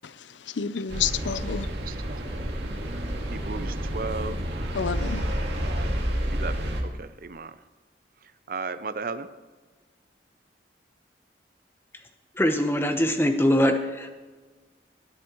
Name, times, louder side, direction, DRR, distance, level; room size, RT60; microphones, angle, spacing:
voice 1, 0.0-1.7 4.7-5.3, left 7 dB, 85° left, 14 dB, 0.6 m, -30 dB
sound 1, 0.9-6.8, equal, 70° right, 2.1 m, -29 dB
voice 2, 1.9-2.4 3.3-4.4 5.7-5.9 6.3-7.5 8.5-9.3, right 4 dB, 50° right, 13 dB, 0.6 m, -35 dB
voice 3, 12.4-14.1, equal, 15° left, 6 dB, 1.0 m, -22 dB
20.0 x 10.5 x 3.1 m, 1.4 s
head